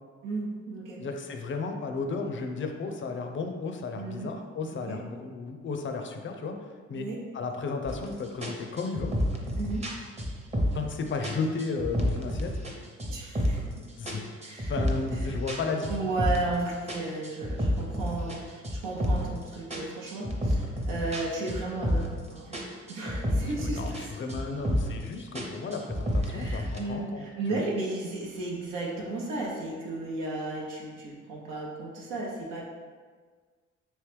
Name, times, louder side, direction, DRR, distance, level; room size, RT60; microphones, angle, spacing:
voice 1, 0.2-1.0 4.0-4.3 4.7-5.0 6.9-7.2 9.6-9.8 13.0-13.6 14.4-14.7 15.1-15.3 15.9-22.6 22.9-24.1 26.2-32.6, right 2 dB, 80° right, -3 dB, 0.7 m, -34 dB
voice 2, 1.0-7.1 7.3-9.1 10.7-12.6 14.0-15.9 23.3-27.2 27.5-27.6, left 4 dB, 40° left, 4 dB, 0.5 m, -34 dB
sound 1, 7.9-8.1 8.4-10.9 11.2-12.7 13.0-13.7 14.1-16.6 16.9-19.4 19.7-22.3 22.5-24.0 24.3-25.0 25.4-26.8, equal, 20° right, 0.8 m, -30 dB
3.1 x 3.0 x 3.3 m, 1.5 s
supercardioid pair, 50°, 32 cm